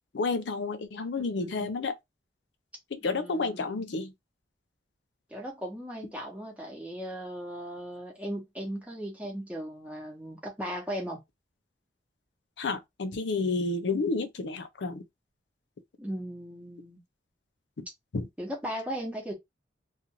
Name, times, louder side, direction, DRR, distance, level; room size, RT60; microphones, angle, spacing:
voice 1, 0.1-1.9 2.9-4.1 12.6-15.0 17.8-17.9 18.1-18.3, left 3 dB, 80° left, 0.5 m, -30 dB
voice 2, 1.2-1.7 3.0-3.8 5.3-11.2 16.0-17.0 18.4-19.3, equal, 10° right, 0.9 m, -37 dB
2.5 x 2.4 x 2.8 m
head